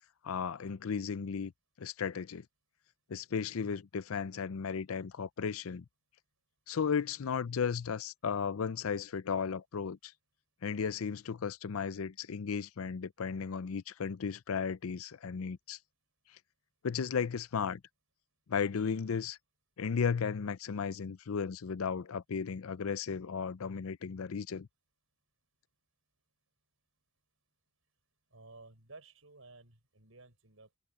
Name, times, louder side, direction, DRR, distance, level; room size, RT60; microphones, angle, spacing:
voice 1, 0.2-1.5 1.8-2.4 3.1-5.8 6.7-10.1 10.6-15.8 16.8-17.8 18.5-19.4 19.8-24.7, left 6 dB, 85° left, 0.5 m, -35 dB
voice 2, 28.3-30.8, right 3 dB, 75° right, 5.6 m, -55 dB
head